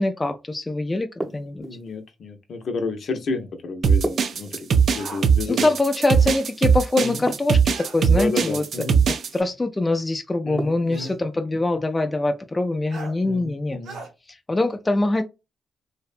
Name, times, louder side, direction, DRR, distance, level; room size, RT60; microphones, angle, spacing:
voice 1, 0.0-1.6 5.5-8.6 9.3-13.8 14.3-15.2, left 2 dB, 20° left, 0.3 m, -24 dB
sound 1, 1.2-2.0 4.0-5.1 7.3-8.0 10.6-11.2, right 1 dB, 15° right, 0.7 m, -33 dB
voice 2, 1.6-4.7 4.9-5.7 7.0-7.3 8.1-9.0 10.5-11.1 13.2-14.0, left 3 dB, 65° left, 0.6 m, -30 dB
sound 2, 3.8-9.3, right 6 dB, 65° right, 0.4 m, -19 dB
sound 3, 4.9-5.3 7.7-8.0 9.3-9.4 10.9-11.2 12.9-13.2 13.8-14.1, right 3 dB, 85° right, 0.9 m, -39 dB
2.6 x 2.1 x 2.4 m
cardioid pair, 75°, 0 cm